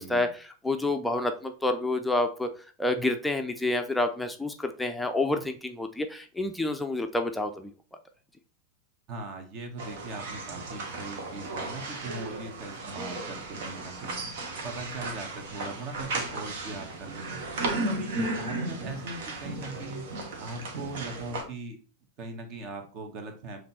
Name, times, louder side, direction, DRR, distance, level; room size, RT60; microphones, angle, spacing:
voice 1, 0.0-2.5 2.8-7.7, left 2 dB, 5° left, 5 dB, 0.6 m, -28 dB
voice 2, 9.1-14.2 14.6-17.4 17.8-20.1 20.4-21.8 22.2-23.6, right 2 dB, 35° right, 6 dB, 1.7 m, -40 dB
sound 1, 9.8-21.4, right 2 dB, 55° right, 1.5 m, -35 dB
7.5 x 3.3 x 4.3 m, 0.39 s
figure-of-eight pair, 90°, 0 cm